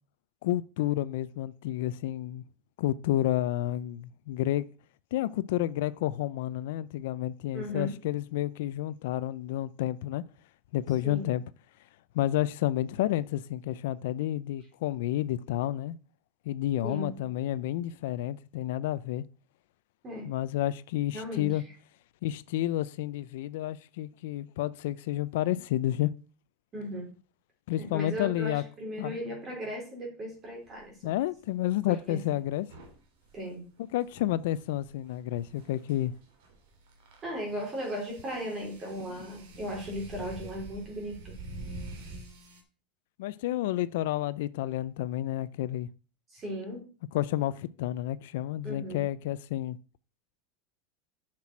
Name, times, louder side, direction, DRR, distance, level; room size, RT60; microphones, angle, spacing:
voice 1, 0.4-2.4 2.8-4.7 5.1-10.2 10.7-11.4 12.1-16.0 16.5-19.2 20.3-21.6 22.2-26.1 27.7-28.6 29.0-29.2 31.0-32.7 33.9-36.1 39.1-39.3 43.2-45.9 47.1-49.8, left 14 dB, 70° left, 0.4 m, -30 dB
voice 2, 7.5-7.9 11.0-11.3 16.8-17.2 20.0-20.3 21.1-21.6 26.7-27.1 27.8-31.1 31.9-32.2 33.3-33.6 37.2-41.3 46.3-46.8 48.6-49.0, equal, 20° right, 3.6 m, -36 dB
sound 1, 30.7-30.9 32.6-42.6, right 2 dB, 65° right, 2.6 m, -47 dB
7.4 x 5.9 x 6.0 m
supercardioid pair, 170°, 0 cm